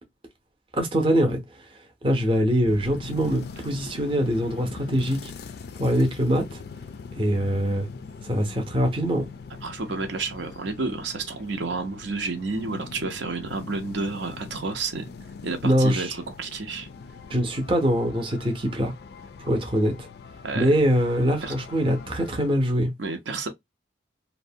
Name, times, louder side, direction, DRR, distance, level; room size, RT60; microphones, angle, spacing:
voice 1, 0.7-1.4 2.0-5.3 5.8-6.6 7.1-7.9 8.2-9.3 15.6-16.2 17.3-18.9 19.4-20.1 20.5-22.9, equal, 30° right, 0.6 m, -23 dB
sound 1, 2.6-22.5, left 4 dB, 55° left, 0.3 m, -42 dB
voice 2, 9.6-15.1 15.4-16.9 20.4-20.7 21.4-21.5 23.0-23.5, right 3 dB, 70° right, 0.5 m, -30 dB
2.5 x 2.1 x 2.6 m
head